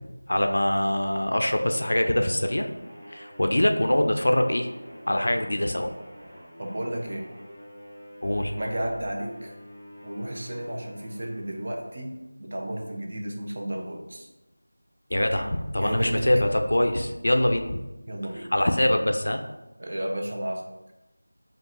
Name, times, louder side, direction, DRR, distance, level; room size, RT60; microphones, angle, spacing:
voice 1, 0.3-2.7 3.1-4.7 5.1-5.9 8.2-8.5 15.1-17.8 18.5-19.4, left 1 dB, 60° left, 5 dB, 0.5 m, -23 dB
sound 1, 2.0-12.2, equal, ahead, 0.9 m, -47 dB
voice 2, 6.6-7.3 8.6-9.5 10.0-14.3 15.3-15.4 15.7-16.3 18.1-18.5 19.8-20.6, right 1 dB, 40° right, 1 dB, 0.7 m, -33 dB
5.1 x 2.4 x 3.8 m, 1.0 s
figure-of-eight pair, 170°, 0 cm